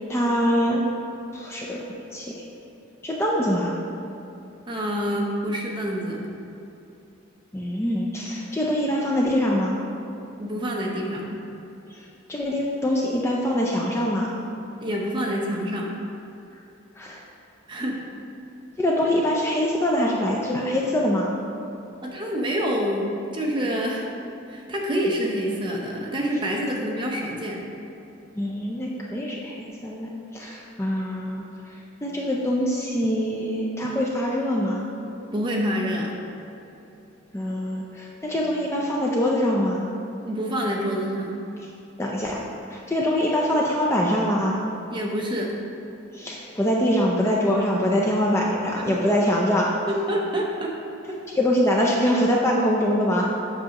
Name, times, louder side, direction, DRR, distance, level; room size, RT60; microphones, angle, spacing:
voice 1, 0.1-0.8 1.3-1.8 2.1-2.4 3.0-3.8 7.5-9.8 11.9-12.0 12.3-14.3 17.0-17.2 18.8-21.3 28.3-31.4 32.0-34.8 37.3-39.9 42.0-42.4 42.7-44.6 46.1-49.7 51.4-53.3, equal, 15° left, -3 dB, 0.4 m, -24 dB
voice 2, 4.7-6.2 10.4-11.3 14.8-15.9 17.7-18.0 22.0-23.1 23.3-24.1 24.5-27.6 35.3-36.1 40.2-41.4 44.9-45.5 49.9-50.7, equal, 25° right, -2 dB, 0.8 m, -27 dB
7.5 x 6.0 x 2.9 m, 2.8 s
head